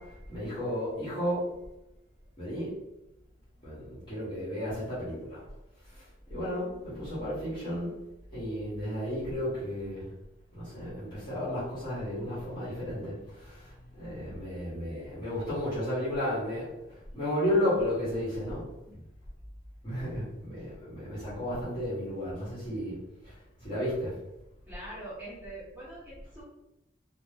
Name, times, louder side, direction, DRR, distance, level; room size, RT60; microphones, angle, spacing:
voice 1, 0.0-1.5 2.4-2.8 3.6-5.4 5.8-8.0 8.3-10.1 10.5-18.6 19.8-23.0 23.2-24.2, left 1 dB, 25° left, -11 dB, 1.0 m, -33 dB
voice 2, 24.7-26.4, right 1 dB, 10° right, -11 dB, 1.4 m, -43 dB
2.5 x 2.1 x 3.4 m, 0.91 s
head